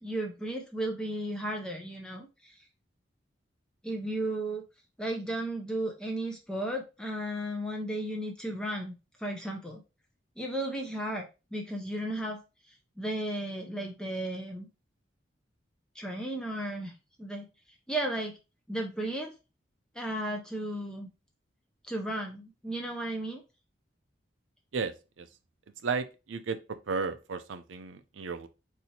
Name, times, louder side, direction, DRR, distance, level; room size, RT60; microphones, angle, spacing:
voice 1, 0.0-2.7 3.8-4.6 5.0-9.8 10.4-12.4 12.7-14.7 15.9-17.5 17.9-18.3 18.7-19.3 19.9-21.1 21.9-23.4, right 1 dB, 5° left, 0.4 m, -34 dB
voice 2, 24.7-25.3 25.8-28.5, right 5 dB, 85° right, 0.5 m, -34 dB
4.2 x 2.7 x 2.8 m
head